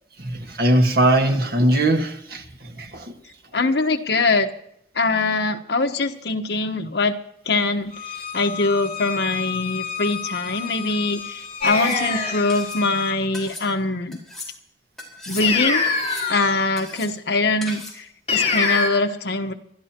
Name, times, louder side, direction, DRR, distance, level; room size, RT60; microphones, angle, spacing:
voice 1, 0.2-3.2, right 1 dB, 60° right, 1.7 m, -20 dB
voice 2, 3.5-4.5 4.9-7.2 7.5-7.9 8.3-14.2 15.3-16.0 16.3-18.0 18.3-19.5, left 3 dB, 75° left, 1.2 m, -23 dB
Bowed string instrument, 7.9-13.2, left 7 dB, 55° left, 4.6 m, -32 dB
sound 1, 11.1-11.3 11.7-12.0 12.5-12.8 13.3-13.7 14.1-14.5 15.0-15.5 15.9-16.3 16.8-17.1 17.6-18.0, left 2 dB, ahead, 4.6 m, -37 dB
sound 2, 11.6-12.5 15.4-16.7 18.3-18.9, left 4 dB, 35° left, 3.8 m, -23 dB
27.0 x 12.5 x 3.0 m
head